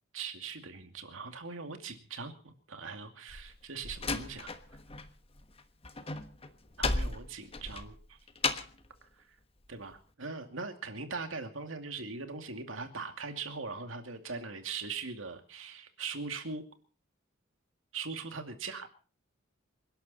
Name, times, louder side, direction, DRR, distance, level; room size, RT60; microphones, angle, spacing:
voice 1, 0.1-4.5 6.8-8.2 9.0-9.2 9.7-16.6 17.9-18.9, right 4 dB, 85° right, 7 dB, 2.4 m, -41 dB
Slam, 3.3-5.1 5.4-8.9, left 3 dB, 30° left, 1.3 m, -35 dB
27.5 x 11.5 x 4.2 m, 0.39 s
head